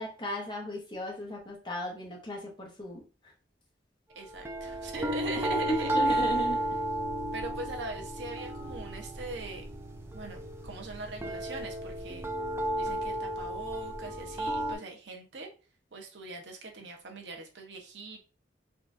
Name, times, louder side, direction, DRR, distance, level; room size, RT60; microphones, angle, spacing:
voice 1, 0.0-3.3 5.5-6.6, equal, 25° left, 0 dB, 0.9 m, -35 dB
voice 2, 4.1-6.4 7.3-9.6 10.1-12.3 12.7-15.5 15.9-18.2, right 2 dB, 80° right, 2 dB, 0.7 m, -41 dB
sound 1, 4.4-14.8, right 1 dB, 15° right, 0.4 m, -33 dB
3.7 x 2.3 x 2.5 m, 0.33 s
head